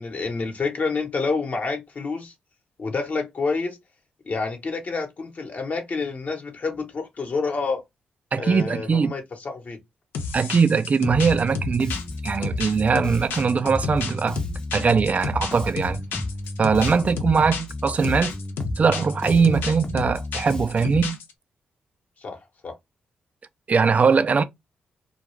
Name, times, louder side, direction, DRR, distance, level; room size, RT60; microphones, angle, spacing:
voice 1, 0.0-2.3 2.8-3.8 4.2-7.8 8.4-9.8 16.9-17.2 19.4-19.6 22.2-22.7, left 4 dB, 50° left, 1.0 m, -28 dB
voice 2, 8.3-9.1 10.3-14.4 14.7-16.0 16.6-18.3 18.8-21.2 23.7-24.4, right 5 dB, 45° right, 0.4 m, -21 dB
sound 1, 10.1-21.3, left 5 dB, 85° left, 0.5 m, -31 dB
Bass guitar, 11.2-21.1, left 2 dB, 25° left, 0.7 m, -33 dB
2.3 x 2.3 x 3.1 m
supercardioid pair, 60°, 3 cm